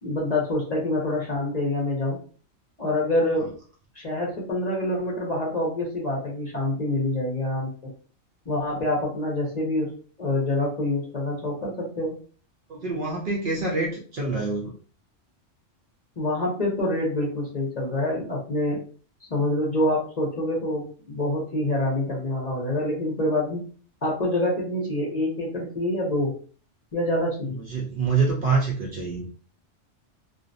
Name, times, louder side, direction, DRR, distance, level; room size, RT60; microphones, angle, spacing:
voice 1, 0.0-2.2 2.8-3.6 3.9-7.7 8.5-9.9 10.2-12.1 16.2-18.8 19.3-23.6 24.0-26.3 26.9-27.6, left 1 dB, 40° left, -3 dB, 0.7 m, -26 dB
voice 2, 12.7-14.7 27.5-29.3, right 4 dB, 55° right, -1 dB, 0.6 m, -26 dB
2.5 x 2.0 x 2.5 m, 0.41 s
omnidirectional pair, 1.2 m